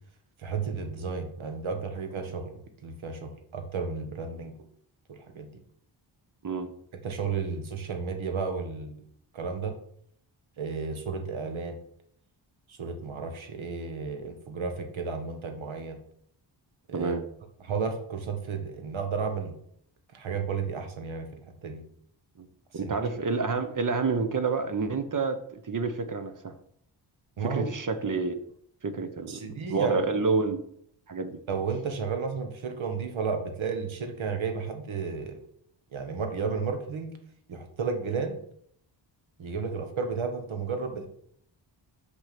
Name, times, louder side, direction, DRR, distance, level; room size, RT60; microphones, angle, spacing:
voice 1, 0.4-4.5 5.1-5.5 7.0-9.0 9.3-9.7 10.6-11.8 12.7-16.0 16.9-17.1 17.6-19.6 20.1-21.3 21.6-21.8 22.8-23.0 27.4-27.7 29.3-30.0 31.5-35.4 35.9-37.1 37.5-38.4 39.4-41.1, right 5 dB, 75° right, 6 dB, 1.6 m, -32 dB
voice 2, 22.7-26.5 27.4-28.4 28.8-30.6 31.1-31.4, right 4 dB, 40° right, 10 dB, 1.0 m, -29 dB
6.3 x 6.0 x 6.0 m, 0.68 s
cardioid pair, 75°, 48 cm